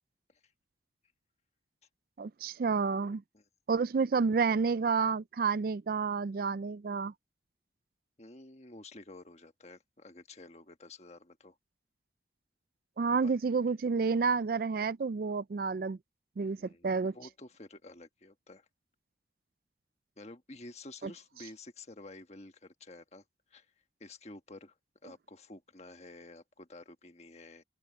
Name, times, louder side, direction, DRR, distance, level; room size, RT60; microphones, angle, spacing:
voice 1, 2.2-3.2 3.7-7.1 13.0-16.0 16.4-16.6 16.8-17.1, right 5 dB, 55° right, 0.4 m, -29 dB
voice 2, 8.2-11.6 13.1-13.3 16.5-18.7 20.2-23.2 23.5-23.7 24.0-24.7 25.0-27.6, left 2 dB, 35° left, 1.4 m, -51 dB
head